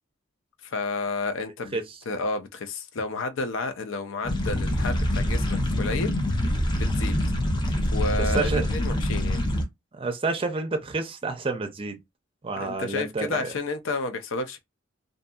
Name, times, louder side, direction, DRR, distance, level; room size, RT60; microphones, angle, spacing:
voice 1, 0.6-1.8 2.1-6.1 6.8-7.2 7.9-9.4 12.6-14.6, left 3 dB, 70° left, 0.5 m, -31 dB
sound 1, 4.2-9.6, left 1 dB, 25° left, 0.6 m, -25 dB
voice 2, 8.1-8.7 9.9-12.0 12.4-13.5, right 3 dB, 30° right, 0.5 m, -29 dB
2.6 x 2.6 x 2.3 m
head